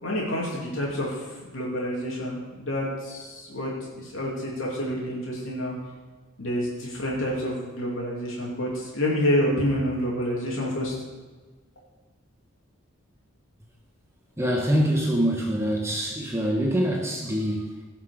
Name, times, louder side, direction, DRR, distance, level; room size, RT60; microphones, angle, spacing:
voice 1, 0.0-5.7 6.4-10.9, equal, 80° left, -4 dB, 2.7 m, -28 dB
voice 2, 14.4-17.8, equal, 15° right, -1 dB, 1.2 m, -25 dB
17.0 x 6.0 x 5.1 m, 1.3 s
head